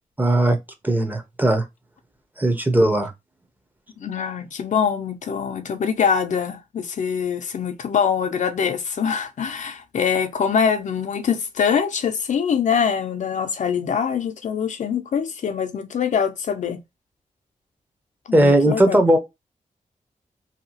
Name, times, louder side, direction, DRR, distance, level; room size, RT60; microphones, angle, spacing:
voice 1, 0.2-0.6 0.8-1.6 2.4-3.1 18.3-19.2, right 1 dB, 15° right, 0.6 m, -18 dB
voice 2, 4.0-16.8 18.3-19.0, left 7 dB, 65° left, 0.4 m, -24 dB
2.8 x 2.3 x 2.7 m
wide cardioid pair, 95°, 14 cm